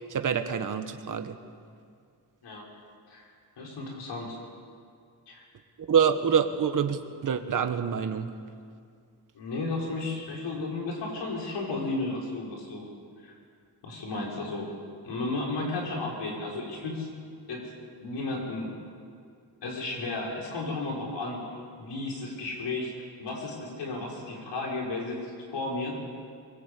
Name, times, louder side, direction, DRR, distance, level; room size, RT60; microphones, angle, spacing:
voice 1, 0.0-1.4 5.9-8.3, right 7 dB, 50° right, 7 dB, 1.5 m, -26 dB
voice 2, 3.6-4.4 5.3-5.4 9.3-12.9 13.2-13.3 13.8-14.7 15.0-17.1 17.5-18.7 19.6-21.4 21.8-22.9 23.2-25.2 25.5-25.9, left 2 dB, 80° left, -1 dB, 6.0 m, -33 dB
23.0 x 23.0 x 8.5 m, 2.2 s
wide cardioid pair, 175°, 41 cm